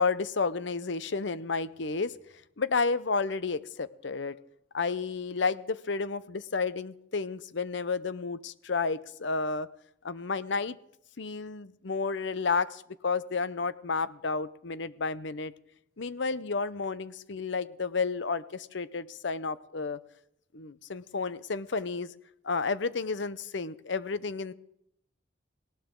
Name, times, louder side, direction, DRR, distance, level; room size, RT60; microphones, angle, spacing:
voice 1, 0.0-2.1 2.6-4.3 4.7-9.7 10.0-10.8 11.2-15.5 16.0-20.0 20.5-22.1 22.4-24.5, left 4 dB, 70° left, 16 dB, 0.7 m, -31 dB
19.0 x 17.5 x 3.8 m, 0.73 s
head